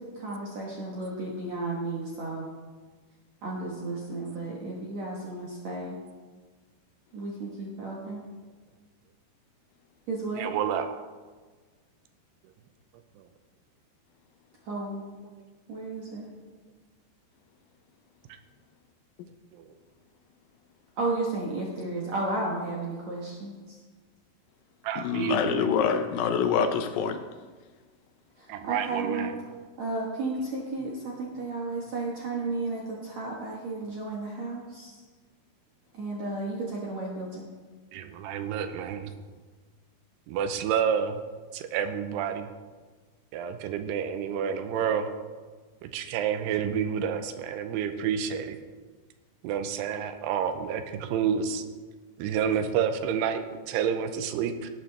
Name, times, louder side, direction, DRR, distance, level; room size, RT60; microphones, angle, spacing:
voice 1, 0.2-2.4 3.4-6.0 7.1-8.2 10.1-10.5 14.6-15.0 15.7-16.3 21.0-23.8 28.4-29.3 29.8-35.0 35.9-37.4, right 2 dB, 60° right, -3 dB, 2.0 m, -33 dB
voice 2, 10.4-10.9 24.8-25.7 28.5-29.3 37.9-39.1 40.3-41.2 41.5-42.5 43.3-45.1 45.8-48.6 49.4-51.6 52.2-54.7, right 8 dB, 85° right, 8 dB, 2.8 m, -29 dB
voice 3, 25.0-27.2, left 7 dB, 80° left, 7 dB, 2.1 m, -26 dB
18.5 x 9.1 x 3.4 m, 1.4 s
omnidirectional pair, 4.8 m